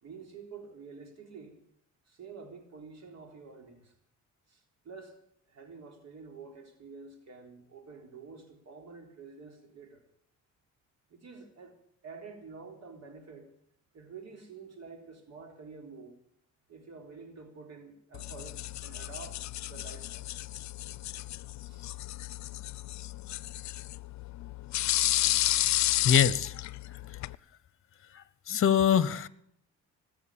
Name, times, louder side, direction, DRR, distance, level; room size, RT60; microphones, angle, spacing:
voice 1, 0.0-1.5 2.1-3.9 4.5-5.2 5.5-10.0 11.1-11.8 12.0-13.5 13.9-16.2 16.7-20.3 21.7-21.9 22.3-22.4 22.7-22.9, right 4 dB, 60° right, 4 dB, 3.6 m, -48 dB
sound 1, 18.1-27.4, left 15 dB, 65° left, 0.6 m, -32 dB
voice 2, 26.0-26.5 26.9-27.0 28.1-29.3, left 8 dB, 45° left, 18 dB, 1.0 m, -24 dB
19.5 x 8.0 x 8.7 m, 0.69 s
cardioid pair, 90°, 30 cm